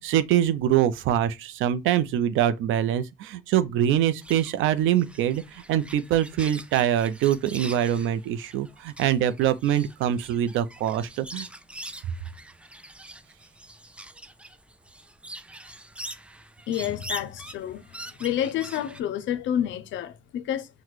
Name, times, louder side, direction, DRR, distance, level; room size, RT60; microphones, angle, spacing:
voice 1, 0.0-11.5, right 11 dB, 90° right, 0.5 m, -24 dB
sound 1, 4.2-19.0, right 1 dB, 5° right, 0.3 m, -43 dB
voice 2, 16.7-17.8 18.2-20.7, left 10 dB, 75° left, 0.5 m, -29 dB
5.9 x 2.1 x 3.1 m
cardioid pair, 90°, 20 cm